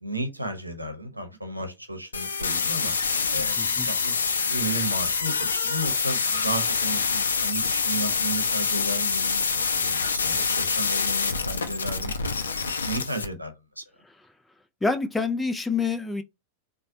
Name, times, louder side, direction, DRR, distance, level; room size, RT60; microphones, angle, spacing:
voice 1, 0.0-2.9 3.3-12.1 12.6-13.8, right 1 dB, 85° right, 0.8 m, -34 dB
sound 1, 2.1-13.3, left 5 dB, 70° left, 0.5 m, -26 dB
voice 2, 3.6-3.9 14.8-16.2, left 4 dB, 10° left, 0.4 m, -27 dB
4.0 x 2.2 x 2.7 m
figure-of-eight pair, 90°, 0 cm